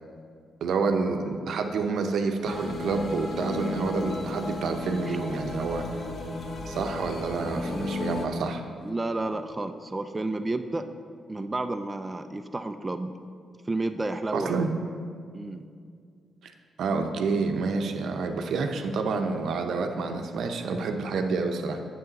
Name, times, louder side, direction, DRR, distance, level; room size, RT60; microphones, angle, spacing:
voice 1, 0.6-6.0 6.7-8.6 14.3-14.7 16.4-21.8, right 4 dB, 75° right, 5 dB, 0.6 m, -28 dB
sound 1, 2.4-8.3, left 2 dB, 60° left, 0.9 m, -34 dB
voice 2, 8.8-10.9 11.3-13.1 13.7-14.6 15.3-15.7, right 2 dB, 20° right, 7 dB, 0.4 m, -31 dB
8.0 x 7.5 x 4.1 m, 2.2 s
cardioid pair, 75°, 0 cm